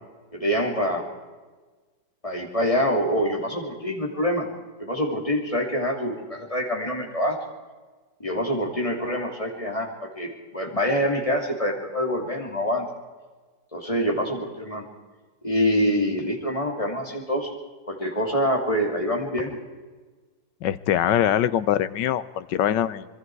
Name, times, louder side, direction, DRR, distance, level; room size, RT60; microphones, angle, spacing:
voice 1, 0.3-1.1 2.2-4.5 4.8-7.4 8.2-12.9 13.7-14.9 15.4-17.5 17.9-19.6, equal, 20° left, 1 dB, 2.8 m, -25 dB
voice 2, 20.6-23.0, left 10 dB, 75° left, 15 dB, 1.4 m, -23 dB
25.5 x 22.0 x 4.7 m, 1.3 s
omnidirectional pair, 1.9 m